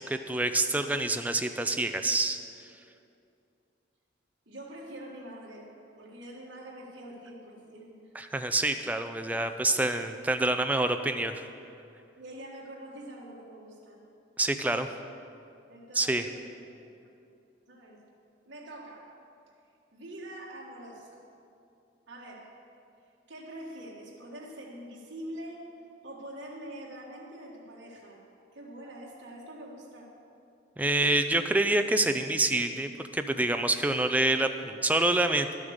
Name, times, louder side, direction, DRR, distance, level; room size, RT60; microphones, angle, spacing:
voice 1, 0.1-2.4 8.2-11.4 14.4-14.9 15.9-16.2 30.8-35.5, right 2 dB, 10° right, 7 dB, 0.5 m, -27 dB
voice 2, 4.4-5.7 6.0-8.1 12.2-14.0 15.7-16.9 17.7-18.0 18.4-19.2 19.9-21.2 22.1-22.5 23.3-25.7 26.0-28.2 28.5-30.1, right 1 dB, 65° right, -5 dB, 1.7 m, -45 dB
11.5 x 8.7 x 6.5 m, 2.6 s
head